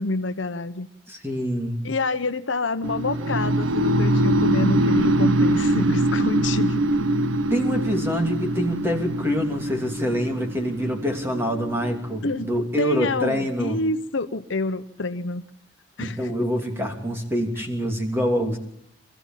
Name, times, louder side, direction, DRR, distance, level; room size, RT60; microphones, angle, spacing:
voice 1, 0.0-0.9 1.8-7.1 12.2-12.5 12.8-15.4 16.0-16.5, left 3 dB, 70° left, 10 dB, 1.0 m, -28 dB
voice 2, 1.1-1.9 7.5-13.8 16.0-18.6, equal, 10° right, 3 dB, 2.9 m, -25 dB
sound 1, 2.8-12.8, right 1 dB, 85° right, 0.9 m, -23 dB
26.0 x 15.0 x 7.5 m, 0.79 s
head